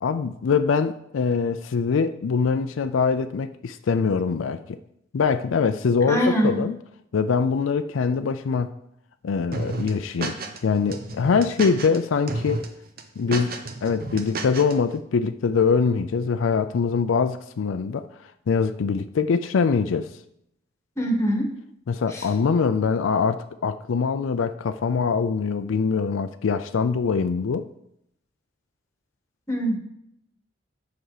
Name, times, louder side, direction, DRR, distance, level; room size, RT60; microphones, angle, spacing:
voice 1, 0.0-4.8 5.1-6.8 7.1-8.7 9.2-12.7 13.2-13.6 13.8-18.1 18.5-20.1 21.9-27.6, left 5 dB, 85° left, 10 dB, 0.4 m, -23 dB
voice 2, 6.0-6.6 21.0-21.5 22.1-22.3 29.5-29.8, equal, 15° left, 2 dB, 1.5 m, -23 dB
sound 1, 9.5-10.6 10.9-12.0 12.3-12.7 13.0-14.7, right 3 dB, 50° right, 0.8 m, -31 dB
7.9 x 6.0 x 4.9 m, 0.76 s
head